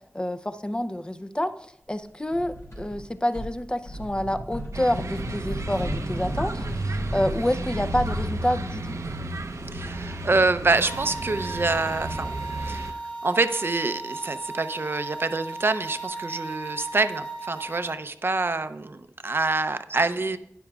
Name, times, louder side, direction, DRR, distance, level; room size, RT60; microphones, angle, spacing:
voice 1, 0.1-1.5 1.9-9.0, left 1 dB, 20° left, 10 dB, 0.6 m, -28 dB
sound 1, 2.3-3.0 3.3-9.4, equal, 70° left, 4.1 m, -35 dB
sound 2, 4.7-12.9, right 2 dB, 85° right, 0.7 m, -33 dB
voice 2, 9.7-12.3 12.6-20.4, right 3 dB, 50° right, 10 dB, 0.6 m, -26 dB
sound 3, 10.8-17.9, right 3 dB, 35° left, 1.7 m, -36 dB
12.0 x 9.9 x 2.4 m, 0.74 s
wide cardioid pair, 65°, 5 cm